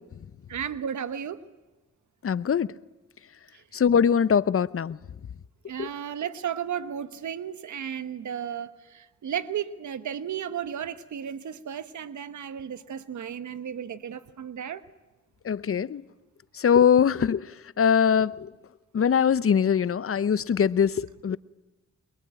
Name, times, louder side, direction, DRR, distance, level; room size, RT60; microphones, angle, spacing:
voice 1, 0.5-1.4 5.7-14.8, right 8 dB, 80° right, 1.1 m, -34 dB
voice 2, 2.2-2.7 3.7-5.0 5.8-5.9 15.5-16.0 16.6-17.5 17.8-18.5 18.9-21.4, left 7 dB, 50° left, 0.7 m, -22 dB
23.0 x 22.5 x 9.0 m
cardioid pair, 60°, 29 cm